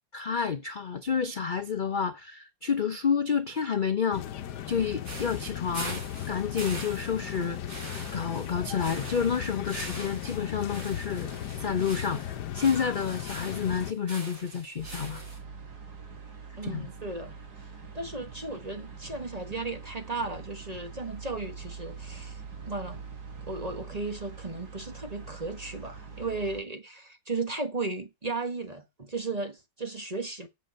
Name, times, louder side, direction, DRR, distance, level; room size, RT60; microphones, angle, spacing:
voice 1, 0.1-4.2 4.7-6.0 6.3-7.6 8.1-11.3 11.6-12.2 12.5-15.2 16.6-16.9, left 6 dB, 45° left, 0.6 m, -29 dB
sound 1, 4.1-13.9, left 11 dB, 85° left, 1.4 m, -37 dB
sound 2, 5.0-15.4, right 2 dB, 55° right, 4.5 m, -43 dB
sound 3, 14.8-26.6, right 5 dB, 75° right, 2.6 m, -44 dB
voice 2, 16.6-17.7 17.9-22.4 22.7-23.0 23.4-30.5, right 3 dB, 25° right, 1.3 m, -35 dB
7.7 x 6.2 x 7.6 m
omnidirectional pair, 1.7 m